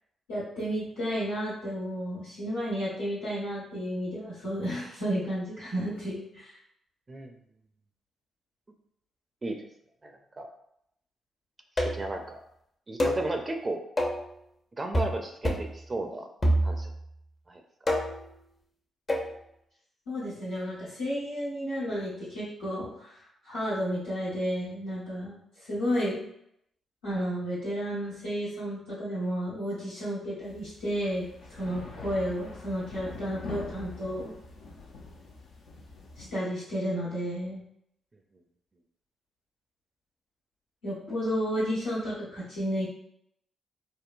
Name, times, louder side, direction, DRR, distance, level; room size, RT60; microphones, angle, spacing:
voice 1, 0.3-6.5 20.0-23.2 23.4-26.2 27.0-31.2 31.5-34.3 36.2-37.6 40.8-42.8, equal, 90° left, -14 dB, 1.4 m, -32 dB
voice 2, 10.0-10.5 11.8-12.4 12.9-13.8 14.8-16.3 16.6-16.9 17.5-17.6, right 2 dB, 35° right, 4 dB, 0.5 m, -34 dB
sound 1, 11.8-12.1 13.0-13.3 14.0-14.3 14.9-15.2 15.4-15.7 16.4-17.0 17.9-18.3 19.1-19.3, equal, 40° left, 0.7 m, -27 dB
sound 2, 30.4-36.3, left 3 dB, 75° left, 0.5 m, -44 dB
3.6 x 2.1 x 2.5 m, 0.74 s
hypercardioid pair, 40°, 0 cm